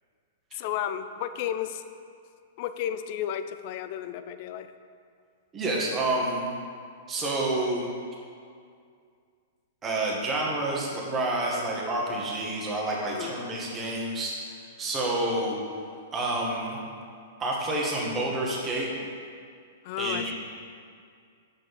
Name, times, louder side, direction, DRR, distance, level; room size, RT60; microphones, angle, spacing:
voice 1, 0.5-1.9 2.6-4.7 13.0-13.3 19.8-20.3, left 10 dB, 50° left, 11 dB, 0.3 m, -33 dB
voice 2, 5.5-6.4 7.1-7.9 9.8-14.3 14.8-15.6 16.1-16.8 17.4-18.9 20.0-20.3, right 2 dB, 20° right, -3 dB, 1.5 m, -28 dB
6.1 x 5.3 x 4.1 m, 2.2 s
hypercardioid pair, 115°, 0 cm